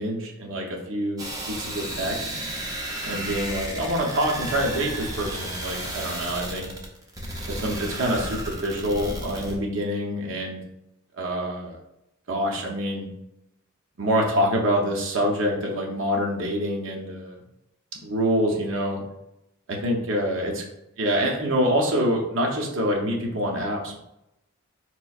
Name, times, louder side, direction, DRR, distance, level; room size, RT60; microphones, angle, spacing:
voice 1, 0.0-2.3 3.0-6.7 7.5-10.6 11.2-11.8 12.3-13.1 14.0-17.4 18.0-19.0 19.7-20.6 21.0-24.0, equal, 55° right, 0 dB, 0.6 m, -26 dB
sound 1, 1.2-9.6, right 1 dB, 15° right, 0.5 m, -33 dB
4.1 x 3.0 x 2.3 m, 0.86 s
head